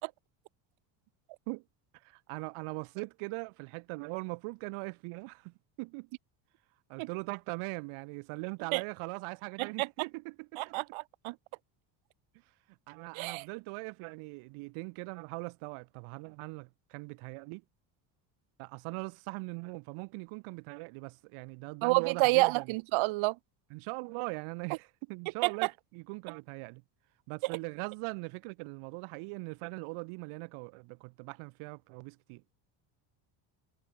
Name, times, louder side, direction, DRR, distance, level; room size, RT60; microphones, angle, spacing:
voice 1, 2.0-6.1 6.9-10.8 12.9-17.6 18.6-22.7 23.7-26.8 27.3-32.4, right 29 dB, 85° right, 5.5 m, -41 dB
voice 2, 10.6-11.3 13.1-13.4 21.8-23.4 25.4-25.7 27.4-27.5, right 23 dB, 70° right, 1.5 m, -28 dB
cardioid pair, 140°, 49 cm